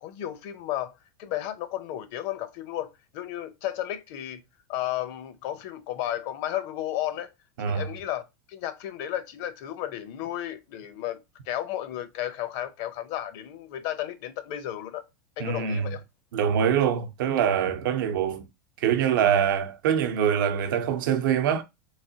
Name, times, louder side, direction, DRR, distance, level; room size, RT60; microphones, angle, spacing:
voice 1, 0.0-0.9 1.2-4.4 4.7-7.3 7.6-8.2 8.5-15.0 15.4-16.0, left 12 dB, 60° left, 0.7 m, -33 dB
voice 2, 7.6-7.9 15.4-15.9 16.3-18.4 18.8-21.6, right 8 dB, 80° right, 0.7 m, -24 dB
3.2 x 2.9 x 2.7 m
supercardioid pair, 125°, 11 cm